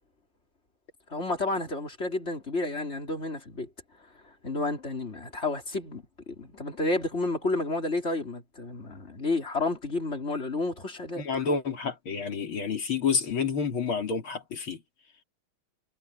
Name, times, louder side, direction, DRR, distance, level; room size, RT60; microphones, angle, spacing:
voice 1, 1.1-3.7 4.2-11.2, left 2 dB, 30° left, 4.0 m, -31 dB
voice 2, 11.2-14.8, left 5 dB, 75° left, 3.9 m, -29 dB
omnidirectional pair, 2.3 m